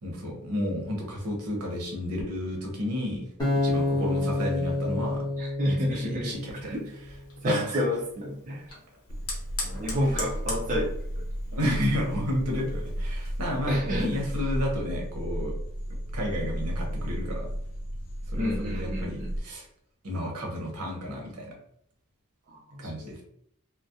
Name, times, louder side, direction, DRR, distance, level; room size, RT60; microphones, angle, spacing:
voice 1, 0.0-3.3 3.6-5.2 5.6-6.7 7.4-7.8 10.0-10.2 11.5-15.5 16.1-17.5 18.3-19.7 20.0-21.5 22.8-23.2, equal, 85° right, -1 dB, 0.8 m, -32 dB
Acoustic guitar, 3.4-6.6, left 2 dB, 15° left, 0.7 m, -28 dB
voice 2, 5.4-6.3 6.6-6.8 7.4-8.7 9.6-10.9 13.7-14.2 18.3-19.3 22.5-23.2, equal, 35° right, -3 dB, 0.4 m, -30 dB
Fire, 6.3-13.6, left 2 dB, 80° left, 0.8 m, -42 dB
sound 1, 9.1-19.4, equal, 60° left, 0.3 m, -33 dB
2.3 x 2.0 x 2.6 m, 0.70 s
head